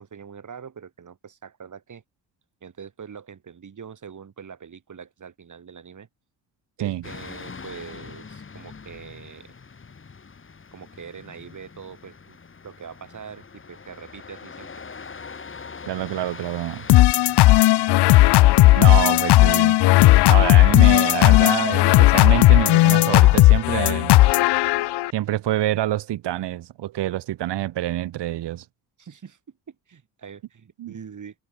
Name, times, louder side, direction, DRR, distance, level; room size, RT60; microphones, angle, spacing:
voice 1, 0.0-2.0 2.6-6.1 6.8-9.5 10.7-12.4 12.6-14.7 29.0-31.3, right 7 dB, 45° right, 7.9 m, -43 dB
sound 1, 7.0-21.9, left 5 dB, 30° left, 2.7 m, -43 dB
voice 2, 15.9-16.9 18.7-19.8 20.2-24.2 25.1-28.6 30.8-30.9, right 13 dB, 75° right, 3.1 m, -26 dB
sound 2, 16.9-25.1, left 17 dB, 70° left, 0.7 m, -15 dB
cardioid pair, 90°, 42 cm